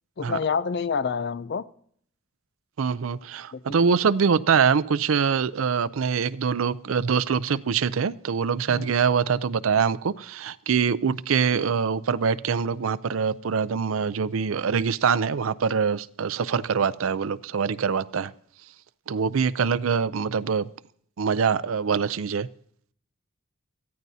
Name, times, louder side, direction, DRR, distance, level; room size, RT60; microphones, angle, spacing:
voice 1, 0.2-1.7 3.5-3.9 8.7-8.9, left 5 dB, 55° left, 0.5 m, -28 dB
voice 2, 2.8-18.3 19.1-20.7 21.2-22.5, right 6 dB, 90° right, 0.5 m, -24 dB
22.5 x 14.5 x 2.8 m
head